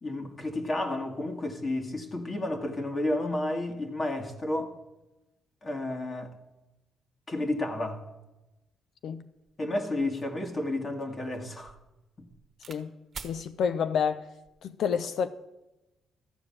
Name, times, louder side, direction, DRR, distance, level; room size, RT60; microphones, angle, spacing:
voice 1, 0.0-4.7 5.6-6.4 7.3-8.0 9.6-11.8, left 1 dB, 30° left, 1.7 m, -31 dB
sound 1, 9.5-9.6 10.0-12.8 13.1-13.4 14.2-14.6, right 5 dB, 45° right, 1.3 m, -48 dB
voice 2, 13.2-14.3 14.6-15.3, left 7 dB, 65° left, 0.6 m, -29 dB
13.5 x 5.0 x 8.5 m
cardioid pair, 90°, 0 cm